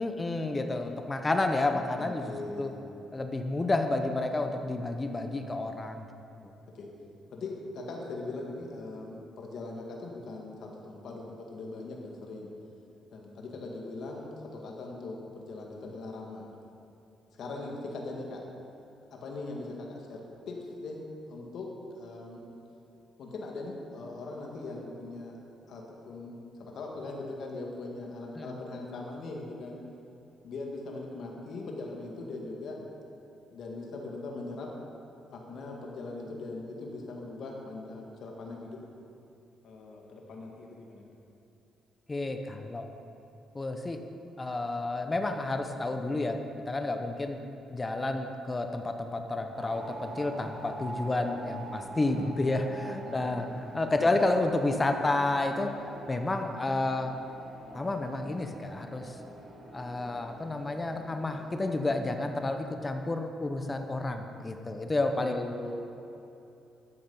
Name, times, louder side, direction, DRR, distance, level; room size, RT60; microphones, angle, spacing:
voice 1, 0.0-2.7 3.1-6.1 28.4-28.5 42.1-42.9 43.5-44.0 44.4-46.4 46.7-47.4 47.7-57.1 57.7-59.1 59.7-65.5, left 2 dB, 25° left, 6 dB, 0.9 m, -30 dB
voice 2, 2.0-2.8 6.7-6.9 7.3-12.5 13.1-16.5 17.3-18.4 19.1-21.0 21.3-21.7 21.9-22.4 23.2-25.3 25.7-29.8 30.4-32.8 33.5-34.7 35.3-38.8 39.6-41.0 53.1-53.5 54.0-54.1 65.1-65.7, left 2 dB, 65° left, -1 dB, 1.9 m, -40 dB
sound 1, 49.5-61.8, right 2 dB, 60° right, 3.1 m, -45 dB
12.0 x 8.4 x 5.5 m, 2.8 s
cardioid pair, 90°, 0 cm